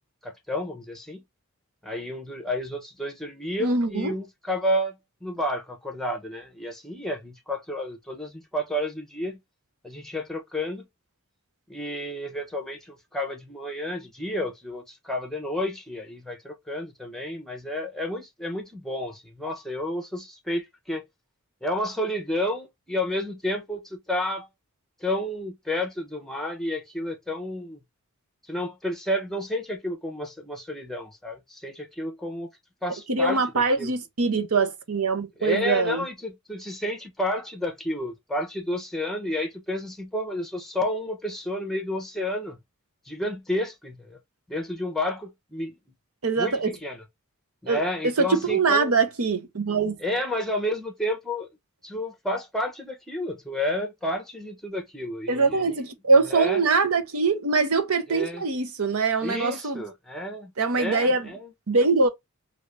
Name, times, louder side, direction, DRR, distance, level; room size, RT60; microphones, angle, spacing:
voice 1, 0.2-1.2 1.8-4.9 5.2-9.4 9.8-10.8 11.7-21.1 21.6-24.5 25.0-27.8 28.5-32.5 32.8-33.9 35.4-42.6 43.1-44.2 44.5-45.8 46.4-47.0 47.6-49.0 50.0-51.5 51.8-55.9 56.2-56.6 58.1-58.4 59.2-60.5 60.8-61.5, left 1 dB, ahead, 0.8 m, -31 dB
voice 2, 3.6-4.1 33.1-36.0 46.2-46.7 47.7-50.0 55.3-59.8 60.6-61.3 61.7-62.1, right 4 dB, 70° right, 0.8 m, -23 dB
2.9 x 2.6 x 3.2 m
head